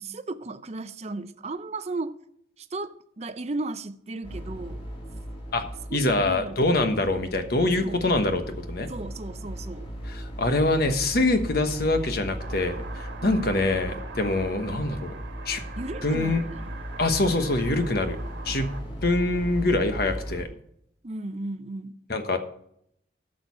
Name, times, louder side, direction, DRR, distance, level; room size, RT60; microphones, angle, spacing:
voice 1, 0.0-2.1 2.6-4.9 5.9-6.6 7.8-8.1 8.9-9.9 13.2-13.6 15.8-16.8 17.3-17.4 21.0-22.0, right 2 dB, 35° right, 0.6 m, -35 dB
sound 1, 4.2-20.4, equal, 30° left, 3.0 m, -37 dB
voice 2, 5.9-8.4 8.7-8.9 10.1-15.1 15.5-15.6 16.0-16.4 17.0-18.2 18.4-18.7 19.0-20.5 22.1-22.4, left 2 dB, 55° left, 1.2 m, -24 dB
sound 2, 12.4-18.8, right 4 dB, 75° right, 1.6 m, -43 dB
13.0 x 6.5 x 5.7 m
head